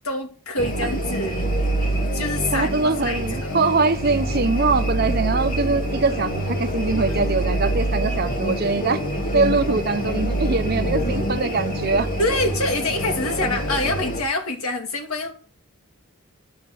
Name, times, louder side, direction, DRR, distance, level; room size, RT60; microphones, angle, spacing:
voice 1, 0.0-1.4 2.1-3.6 12.2-15.3, left 2 dB, 85° left, 2.7 m, -26 dB
sound 1, 0.6-14.2, right 1 dB, 40° left, 2.2 m, -25 dB
voice 2, 2.5-9.0 9.3-12.1, right 3 dB, 45° right, 0.9 m, -22 dB
10.5 x 7.6 x 7.8 m
head